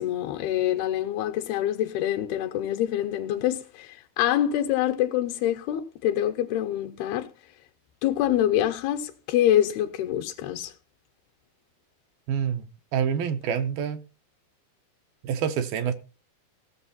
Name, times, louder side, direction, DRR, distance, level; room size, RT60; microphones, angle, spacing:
voice 1, 0.0-7.3 8.0-10.7, left 12 dB, 85° left, 2.8 m, -25 dB
voice 2, 12.3-12.7 12.9-14.0 15.2-15.9, right 8 dB, 75° right, 2.6 m, -26 dB
17.0 x 7.0 x 4.2 m
omnidirectional pair, 4.4 m